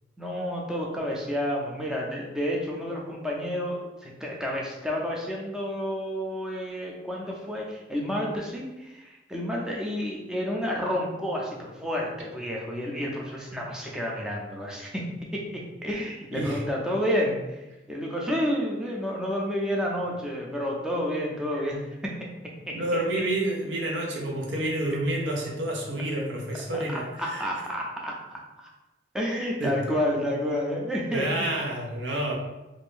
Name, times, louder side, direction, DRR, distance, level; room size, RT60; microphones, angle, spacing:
voice 1, 0.2-15.1 15.3-22.1 22.7-22.8 26.7-26.8 27.2-28.2 28.6-28.7 29.1-31.5, equal, 5° right, -3 dB, 0.4 m, -30 dB
voice 2, 22.7-27.5 29.6-29.8 31.1-32.3, right 1 dB, 85° right, -1 dB, 0.7 m, -29 dB
2.6 x 2.5 x 3.6 m, 1.0 s
head